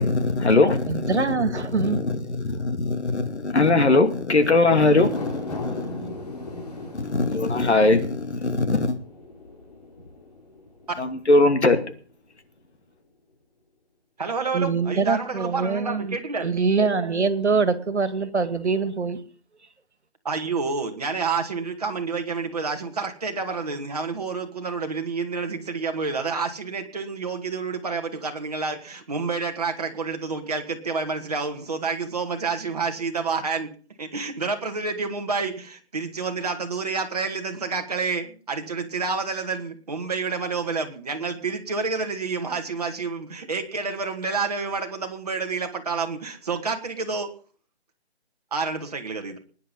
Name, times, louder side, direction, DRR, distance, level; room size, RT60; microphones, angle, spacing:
voice 1, 0.0-1.2 1.8-2.2 2.4-5.2 5.6-5.9 6.9-9.0 11.0-11.8, left 2 dB, 75° left, 2.7 m, -20 dB
voice 2, 0.9-2.0 14.5-19.2, right 4 dB, 75° right, 2.2 m, -24 dB
sound 1, 5.0-11.5 11.9-12.0, left 2 dB, 35° left, 3.7 m, -38 dB
voice 3, 14.2-16.5 20.2-33.7 34.0-47.3 48.5-49.4, right 4 dB, 35° right, 2.1 m, -29 dB
20.5 x 10.5 x 5.5 m
figure-of-eight pair, 175°, 34 cm